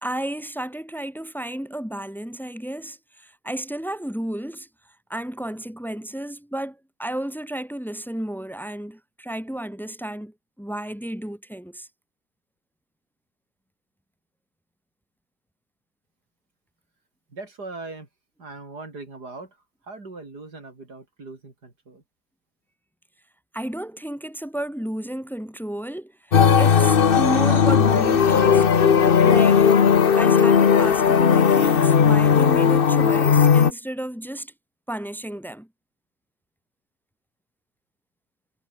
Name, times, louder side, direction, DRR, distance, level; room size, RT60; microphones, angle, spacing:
voice 1, 0.0-4.7 5.1-11.9 23.5-28.6 29.2-29.7 30.2-34.5 34.9-35.7, right 1 dB, ahead, 3.6 m, -32 dB
voice 2, 17.3-18.1 18.4-19.6 19.8-22.0, right 3 dB, 80° right, 5.2 m, -40 dB
sound 1, 26.3-33.7, left 7 dB, 40° left, 1.0 m, -16 dB
omnidirectional pair, 1.7 m